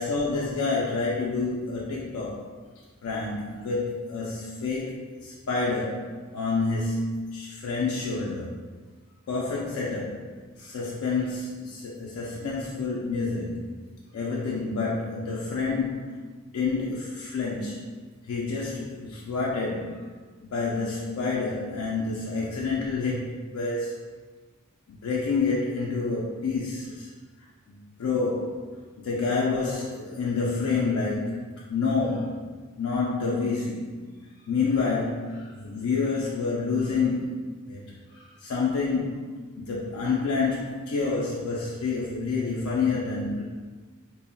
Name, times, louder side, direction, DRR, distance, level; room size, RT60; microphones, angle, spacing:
voice 1, 0.0-2.5 3.0-8.6 9.3-10.3 10.6-13.7 14.1-16.2 16.5-17.8 18.2-20.0 20.4-24.0 24.9-27.1 27.7-32.4 32.8-33.9 34.5-39.3 39.6-43.4, left 4 dB, 85° left, -4 dB, 0.4 m, -28 dB
2.1 x 2.1 x 3.6 m, 1.4 s
head